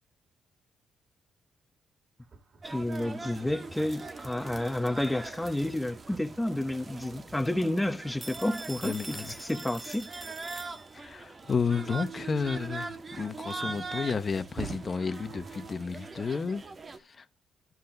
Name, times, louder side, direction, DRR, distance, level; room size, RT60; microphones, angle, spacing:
sound 1, 2.2-15.7, right 5 dB, 50° right, 2.4 m, -51 dB
voice 1, 2.6-10.1, left 1 dB, 5° left, 1.4 m, -30 dB
sound 2, 2.6-17.0, right 3 dB, 30° right, 1.7 m, -42 dB
Telephone, 8.2-11.2, right 2 dB, 15° right, 1.0 m, -44 dB
voice 2, 8.8-9.5 10.9-16.6 17.0-17.2, left 5 dB, 35° left, 1.1 m, -32 dB
14.0 x 5.6 x 4.0 m
cardioid pair, 90°, 0 cm